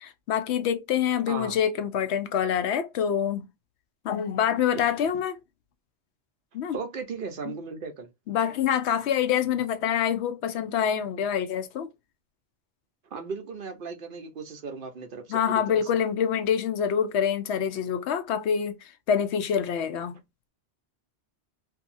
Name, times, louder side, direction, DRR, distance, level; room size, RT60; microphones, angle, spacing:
voice 1, 0.0-3.5 4.0-5.4 6.5-6.8 7.5-7.6 8.3-11.9 15.3-18.8 19.1-20.2, left 8 dB, 90° left, 0.9 m, -26 dB
voice 2, 6.7-8.1 13.1-15.8, right 5 dB, 60° right, 0.8 m, -36 dB
2.7 x 2.7 x 2.5 m
omnidirectional pair, 1.1 m